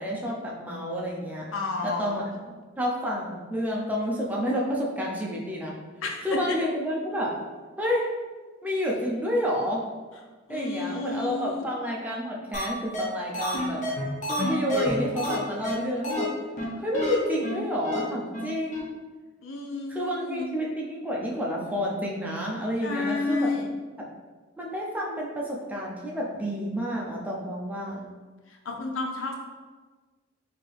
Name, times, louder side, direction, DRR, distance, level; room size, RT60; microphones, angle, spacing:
voice 1, 0.0-1.4 1.8-2.2 2.8-5.8 6.2-7.3 7.8-8.0 8.6-9.8 10.5-13.8 14.3-16.3 16.8-18.9 19.9-23.5 24.6-28.0, equal, 10° right, -3 dB, 0.6 m, -29 dB
voice 2, 1.5-2.4 6.0-6.6 10.5-11.7 19.4-20.5 22.8-23.7 28.5-29.4, left 3 dB, 80° left, 1 dB, 0.6 m, -31 dB
sound 1, 12.5-12.6 12.9-13.0 13.3-15.4 15.6-15.8 16.0-16.2 16.6-16.7 16.9-17.1 17.4-17.5 17.8-18.0 18.3-18.4 18.7-18.8, left 1 dB, 40° left, 0.9 m, -29 dB
4.4 x 2.8 x 3.3 m, 1.3 s
head